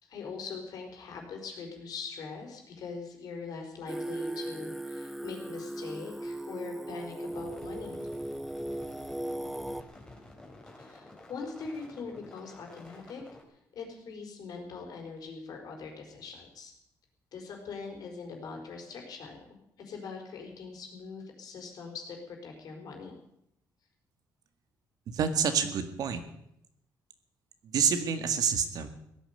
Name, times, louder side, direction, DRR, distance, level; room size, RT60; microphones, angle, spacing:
voice 1, 0.0-8.0 10.8-13.2 13.7-16.7 17.3-19.4 19.8-23.2, left 4 dB, 70° left, 2 dB, 4.6 m, -42 dB
Singing, 3.9-9.8, right 1 dB, 5° right, 0.6 m, -37 dB
sound 1, 7.3-13.4, left 2 dB, 10° left, 3.3 m, -51 dB
voice 2, 25.1-26.2 27.6-28.9, right 7 dB, 70° right, 9 dB, 1.9 m, -28 dB
16.5 x 10.5 x 8.2 m, 0.78 s
cardioid pair, 115°, 7 cm